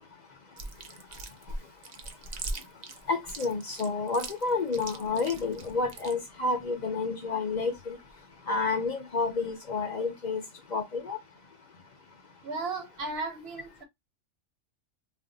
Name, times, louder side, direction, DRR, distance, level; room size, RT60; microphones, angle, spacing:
Chewing mastication, 0.6-6.1, right 2 dB, 90° right, 0.3 m, -39 dB
voice 1, 3.1-8.0 8.5-10.4 10.7-11.2, left 4 dB, 50° left, 0.5 m, -30 dB
voice 2, 12.4-13.8, right 3 dB, 60° right, 0.8 m, -35 dB
2.5 x 2.0 x 3.8 m
omnidirectional pair, 1.4 m